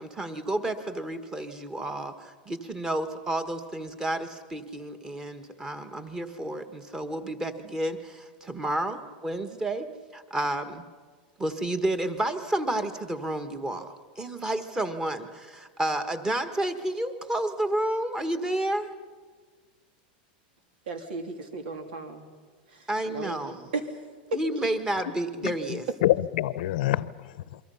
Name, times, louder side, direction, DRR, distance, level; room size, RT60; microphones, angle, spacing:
voice 1, 0.0-9.9 10.1-10.8 11.4-18.9 22.9-23.7 24.3-25.8, right 1 dB, 15° right, 9 dB, 1.6 m, -31 dB
voice 2, 20.9-22.2 22.7-23.9 24.3-24.4, right 2 dB, 85° right, 6 dB, 3.2 m, -35 dB
voice 3, 25.4-27.6, left 15 dB, 70° left, 18 dB, 0.8 m, -27 dB
28.0 x 23.5 x 5.7 m, 1.5 s
supercardioid pair, 145°, 5 cm